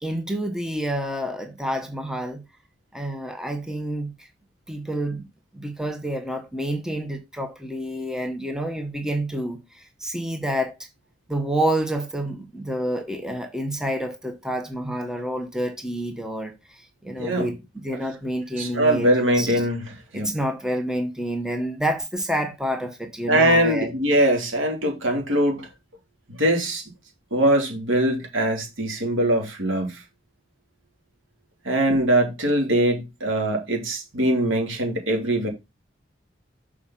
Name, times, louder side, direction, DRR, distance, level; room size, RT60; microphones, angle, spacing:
voice 1, 0.0-2.4 2.9-4.1 4.7-5.3 5.5-10.8 11.3-19.5 20.1-24.0, right 1 dB, 5° right, 1.0 m, -28 dB
voice 2, 18.6-19.8 20.1-20.3 23.3-25.6 26.3-26.8 27.3-29.9 31.6-35.5, right 1 dB, 90° right, 2.8 m, -22 dB
6.9 x 4.9 x 5.7 m
head